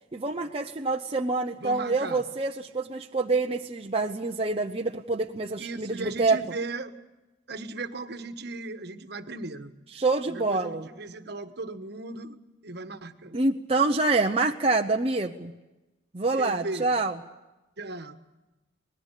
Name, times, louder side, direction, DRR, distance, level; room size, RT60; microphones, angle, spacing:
voice 1, 0.1-6.4 9.9-10.9 13.3-15.5 16.1-17.2, right 3 dB, 30° right, 2 dB, 0.8 m, -26 dB
voice 2, 1.6-2.2 5.6-6.9 7.5-9.7 10.3-12.4 12.6-13.4 16.3-16.9 17.8-18.2, right 3 dB, 55° right, 9 dB, 1.4 m, -37 dB
25.5 x 20.0 x 8.3 m, 1.0 s
head